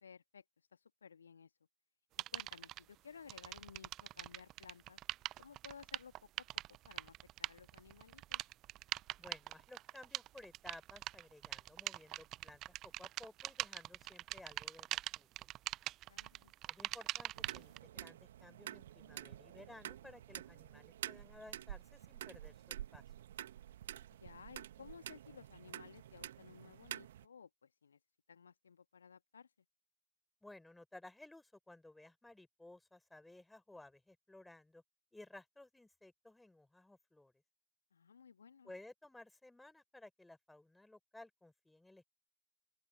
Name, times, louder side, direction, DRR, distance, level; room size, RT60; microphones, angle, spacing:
voice 1, 0.0-0.4 0.7-1.5 2.3-5.0 5.4-8.5 16.1-16.5 24.2-28.0 28.3-29.5 37.9-38.7, left 6 dB, 70° left, 1.6 m, -57 dB
sound 1, 2.2-2.8 3.3-17.8, right 15 dB, 35° right, 0.6 m, -43 dB
voice 2, 9.2-15.5 16.7-23.0 30.4-34.8 35.1-37.3 38.6-42.0, left 2 dB, 5° left, 3.9 m, -57 dB
sound 2, 17.3-27.2, right 12 dB, 60° right, 1.8 m, -49 dB
open air
figure-of-eight pair, 90°, 0 cm